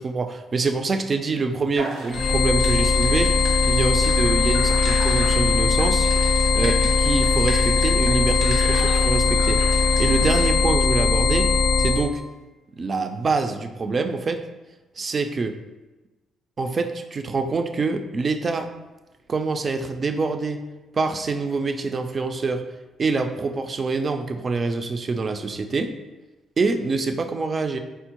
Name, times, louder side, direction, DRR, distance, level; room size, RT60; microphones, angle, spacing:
voice 1, 0.0-6.1 6.6-9.6 10.0-11.5 11.8-12.2 12.8-14.4 15.0-15.6 16.6-18.7 19.3-20.6 20.9-22.6 23.0-25.9 26.6-27.8, right 4 dB, 40° right, 7 dB, 0.3 m, -25 dB
sound 1, 1.8-10.5, right 2 dB, 85° right, 0.8 m, -36 dB
sound 2, 2.1-12.1, left 4 dB, 55° left, 0.3 m, -20 dB
4.3 x 2.0 x 2.9 m, 1.1 s
cardioid pair, 90°, 0 cm